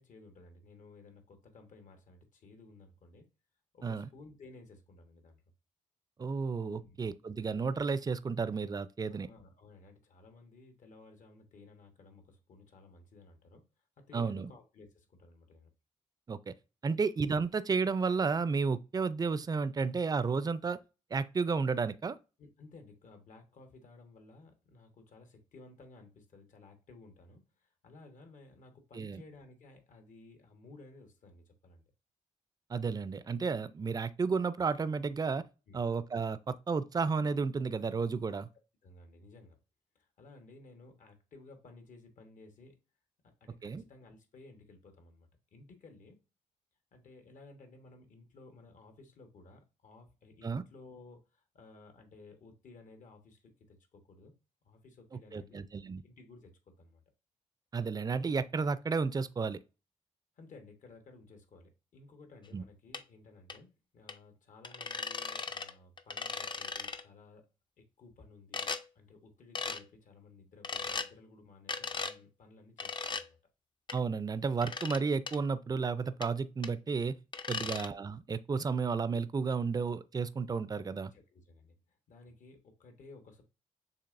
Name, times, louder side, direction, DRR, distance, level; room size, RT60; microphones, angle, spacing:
voice 1, 0.0-3.3 3.7-5.4 6.8-7.0 9.1-13.6 14.0-15.7 22.4-31.8 35.7-35.8 38.8-39.6 39.9-42.8 43.2-46.2 46.9-54.3 54.6-55.7 56.0-57.0 60.4-67.5 67.8-73.4 77.5-77.8 81.0-83.4, left 3 dB, 65° left, 1.2 m, -56 dB
voice 2, 6.2-9.3 14.1-14.5 16.3-16.5 16.8-20.8 21.1-22.2 28.9-29.2 32.7-35.4 35.7-38.5 43.6-43.8 50.4-50.6 55.3-56.0 57.7-59.6 62.5-62.6 73.9-77.2 77.5-81.1, right 5 dB, 30° right, 0.4 m, -32 dB
sound 1, 62.9-63.0 63.5-63.6 64.1-64.2 64.6-65.7 66.0-67.0 68.5-68.8 69.6-69.8 70.6-71.1 71.7-72.2 72.8-73.2 73.9-74.0 74.6-75.0 75.3-75.4 76.2-76.3 76.6-76.7 77.3-77.9, left 4 dB, 35° left, 0.5 m, -37 dB
6.9 x 2.9 x 2.5 m
cardioid pair, 60°, 14 cm